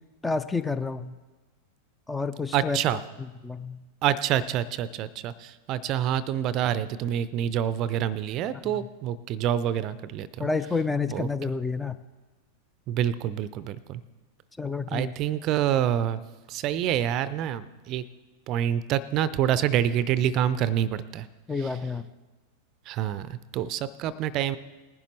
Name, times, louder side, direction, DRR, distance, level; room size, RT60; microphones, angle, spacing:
voice 1, 0.2-1.1 2.1-2.8 3.2-3.8 8.6-8.8 10.4-12.0 14.6-15.1 21.5-22.0, left 4 dB, 10° left, 13 dB, 0.5 m, -29 dB
voice 2, 2.5-3.0 4.0-10.5 11.1-11.3 12.9-14.0 14.9-16.2 16.5-18.0 18.5-21.3 22.9-24.6, right 10 dB, 35° right, 17 dB, 0.5 m, -27 dB
19.5 x 10.5 x 3.1 m, 1.2 s
figure-of-eight pair, 90°, 0 cm